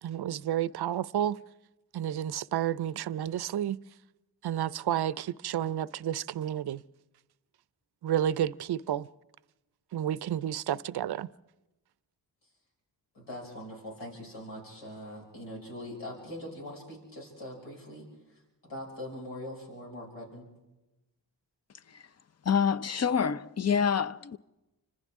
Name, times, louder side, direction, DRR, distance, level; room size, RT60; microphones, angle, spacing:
voice 1, 0.0-1.4 1.9-3.8 4.4-6.8 8.0-9.1 9.9-11.3, right 11 dB, 65° right, 0.6 m, -31 dB
voice 2, 13.1-20.5, left 1 dB, 90° left, 6.0 m, -42 dB
voice 3, 22.4-24.4, left 7 dB, 35° left, 0.6 m, -27 dB
29.5 x 25.5 x 3.6 m
cardioid pair, 70°, 42 cm